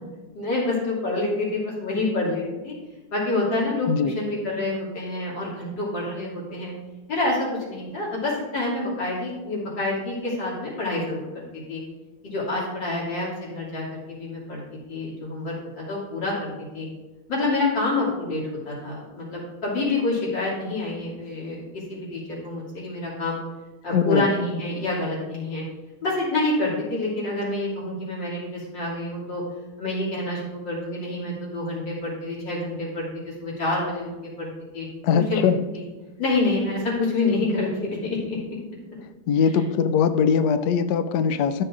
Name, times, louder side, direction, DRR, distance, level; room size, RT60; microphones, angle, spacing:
voice 1, 0.3-2.7 3.1-6.7 7.1-11.4 11.7-11.8 12.2-14.6 14.9-16.5 16.7-16.9 17.3-21.6 21.9-23.4 23.8-25.6 26.0-29.4 29.8-33.1 33.4-34.1 34.4-34.5 34.7-34.9 35.1-35.5 36.2-38.4, left 2 dB, 55° left, -5 dB, 3.3 m, -27 dB
voice 2, 23.9-24.3 35.0-35.6 39.3-41.6, left 6 dB, 90° left, 10 dB, 0.9 m, -21 dB
13.0 x 7.0 x 2.5 m, 1.1 s
omnidirectional pair, 2.4 m